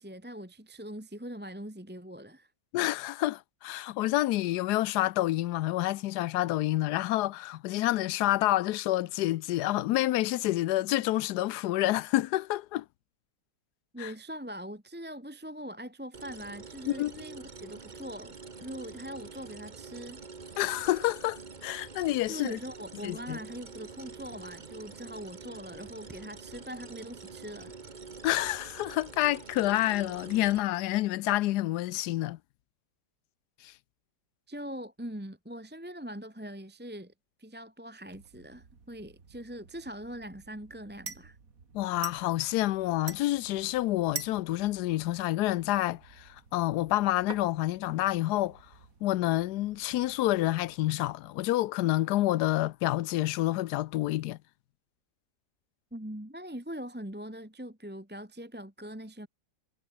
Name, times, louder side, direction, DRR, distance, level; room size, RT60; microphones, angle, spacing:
voice 1, 0.0-2.5 13.9-20.2 22.3-27.8 34.5-37.1 37.4-41.4 55.9-59.3, equal, 5° right, 1.7 m, -42 dB
voice 2, 2.7-12.8 14.0-14.1 17.0-17.1 20.6-22.6 23.0-23.4 28.2-32.4 41.7-48.6 49.0-54.4, left 16 dB, 75° left, 1.1 m, -28 dB
sound 1, 16.1-30.6, right 4 dB, 30° right, 1.3 m, -46 dB
sound 2, 38.1-50.9, right 5 dB, 50° right, 2.8 m, -48 dB
omnidirectional pair, 1.9 m